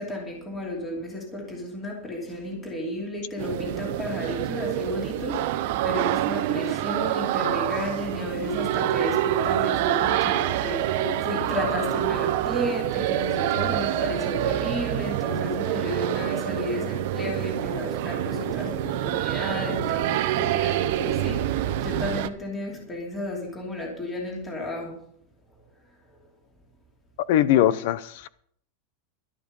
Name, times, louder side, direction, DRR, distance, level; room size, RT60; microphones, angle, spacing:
voice 1, 0.0-25.0, left 1 dB, 10° left, 2.8 m, -33 dB
sound 1, 3.4-22.3, right 13 dB, 50° right, 0.8 m, -26 dB
voice 2, 27.3-28.3, left 12 dB, 50° left, 0.7 m, -21 dB
12.5 x 11.0 x 5.4 m
supercardioid pair, 175°, 0 cm